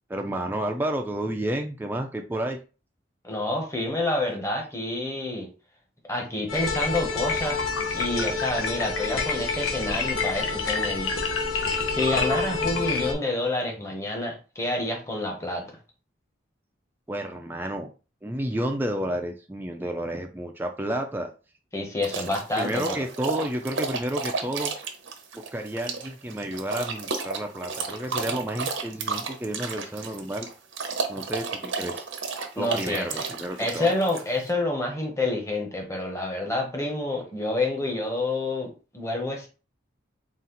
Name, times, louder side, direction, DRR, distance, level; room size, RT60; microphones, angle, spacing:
voice 1, 0.1-2.6 17.1-17.9 18.2-21.3 22.6-24.7 25.3-30.5 31.1-32.1 32.6-34.0, right 1 dB, 10° right, 3 dB, 0.3 m, -31 dB
voice 2, 3.2-5.5 6.1-7.6 7.9-11.2 11.9-15.6 21.7-23.0 32.5-33.3 33.6-38.7 38.9-39.5, left 2 dB, 15° left, 1 dB, 1.0 m, -28 dB
sound 1, 6.5-13.1, left 4 dB, 80° left, 0.8 m, -27 dB
sound 2, 22.0-34.5, right 4 dB, 75° right, 0.7 m, -32 dB
4.1 x 2.4 x 3.8 m, 0.33 s
head